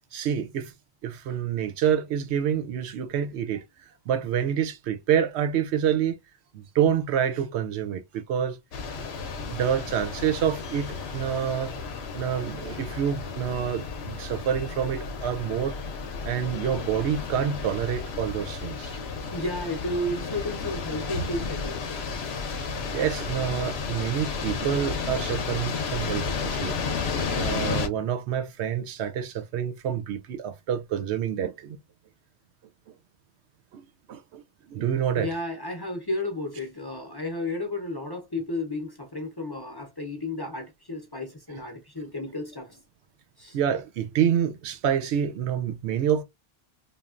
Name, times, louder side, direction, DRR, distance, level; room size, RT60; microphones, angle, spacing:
voice 1, 0.1-0.7 1.0-3.6 4.1-6.2 6.5-8.6 9.5-11.7 12.1-15.8 16.2-19.0 22.9-26.8 27.4-31.8 33.7-33.8 34.1-35.3 43.5-46.2, right 9 dB, 85° right, 0.9 m, -27 dB
sound 1, 8.7-27.9, left 5 dB, 75° left, 0.9 m, -32 dB
voice 2, 19.3-21.9 35.1-42.8 43.4-43.6, left 1 dB, 25° left, 0.6 m, -33 dB
3.1 x 2.3 x 2.4 m
omnidirectional pair, 1.1 m